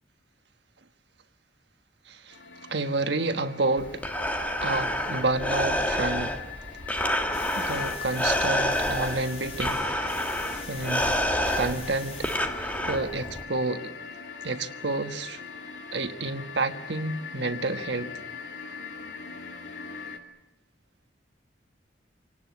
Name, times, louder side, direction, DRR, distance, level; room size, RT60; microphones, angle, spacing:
sound 1, 2.3-20.2, left 6 dB, 80° left, 2.9 m, -41 dB
voice 1, 2.7-4.1 4.4-6.4 7.5-9.8 10.7-11.1 11.5-12.3 12.6-13.9 14.4-15.4 15.9-18.1, right 2 dB, 65° right, 1.4 m, -29 dB
Breathing, 3.8-13.4, equal, 10° left, 1.8 m, -28 dB
sound 2, 7.2-12.4, left 3 dB, 35° left, 5.2 m, -44 dB
27.0 x 18.5 x 9.4 m
head